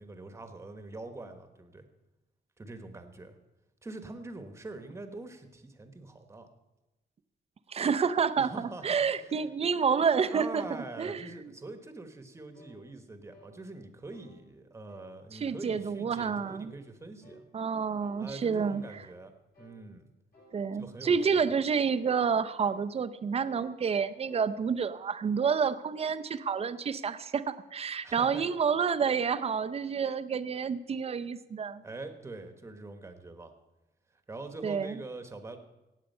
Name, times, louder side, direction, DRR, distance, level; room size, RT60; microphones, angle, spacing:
voice 1, 0.0-1.8 2.6-3.4 3.8-6.5 8.4-9.5 10.3-17.4 18.2-19.3 19.6-20.0 20.8-21.5 28.0-28.4 31.8-33.5 34.3-35.6, right 2 dB, 15° right, 7 dB, 1.2 m, -44 dB
voice 2, 7.7-10.6 11.0-11.5 15.3-16.7 17.5-18.8 20.5-31.8 34.6-34.9, right 6 dB, 35° right, 11 dB, 0.6 m, -29 dB
sound 1, 12.5-12.8 13.3-13.5 14.1-14.3 14.9-15.1 15.6-15.9 16.4-16.7 17.2-17.5 18.0-18.2 18.8-19.0 19.5-19.8 20.3-20.6 21.1-21.3 21.9-22.1 22.7-22.9 23.4-23.7 24.0-24.5, equal, 55° left, 5.9 m, -56 dB
17.5 x 8.3 x 5.5 m, 1.0 s
wide cardioid pair, 150°, 18 cm